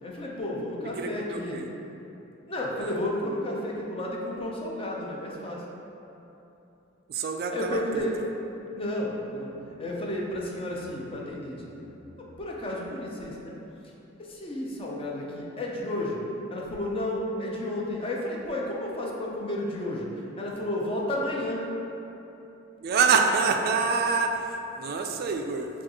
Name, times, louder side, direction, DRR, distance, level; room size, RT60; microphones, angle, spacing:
voice 1, 0.0-1.6 2.5-5.6 7.5-8.2 8.8-13.5 14.3-16.2 16.5-20.1 20.4-21.6, left 1 dB, 30° left, -3 dB, 0.5 m, -32 dB
voice 2, 1.0-1.7 2.8-2.9 7.1-8.1 22.8-25.7, right 5 dB, 50° right, 3 dB, 0.3 m, -26 dB
6.1 x 2.4 x 2.9 m, 3.0 s
head